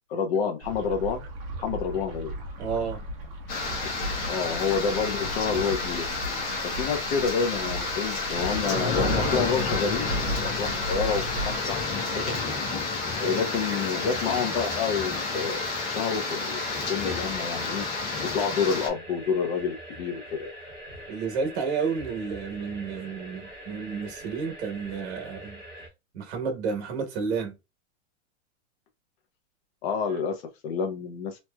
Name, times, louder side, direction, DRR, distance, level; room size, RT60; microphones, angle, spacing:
voice 1, 0.1-1.2 1.6-2.3 3.8-3.9 4.3-6.0 6.6-11.8 12.1-12.3 13.2-15.6 15.9-16.6 16.9-17.9 18.3-20.5 29.8-31.4, left 6 dB, 60° left, 1.0 m, -28 dB
sound 1, 0.6-11.6, equal, 40° right, 0.9 m, -36 dB
voice 2, 2.6-3.1 13.2-13.5 21.1-25.6 26.1-27.6, right 5 dB, 65° right, 1.2 m, -31 dB
sound 2, 3.5-18.9, left 3 dB, 35° left, 1.1 m, -30 dB
sound 3, 13.1-25.9, right 1 dB, 5° left, 1.2 m, -44 dB
3.1 x 2.8 x 2.3 m
supercardioid pair, 170°, 35 cm